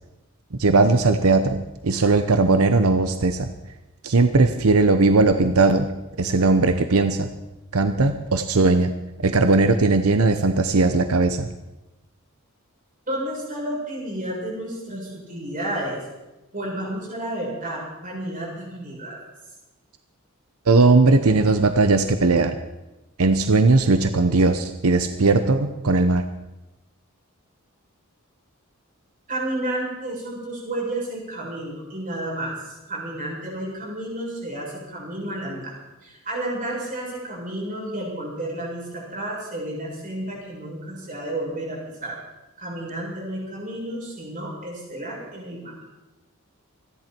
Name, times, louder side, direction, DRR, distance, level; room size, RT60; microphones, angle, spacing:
voice 1, 0.6-3.5 4.0-5.9 6.2-7.3 7.7-8.9 9.2-11.5 20.7-22.5 23.2-26.2, right 3 dB, 90° right, 8 dB, 0.9 m, -18 dB
voice 2, 13.1-16.0 16.5-19.2 29.3-35.8 36.0-42.2 42.6-45.8, right 1 dB, 40° right, -4 dB, 7.4 m, -31 dB
28.5 x 11.0 x 4.5 m, 1.0 s
head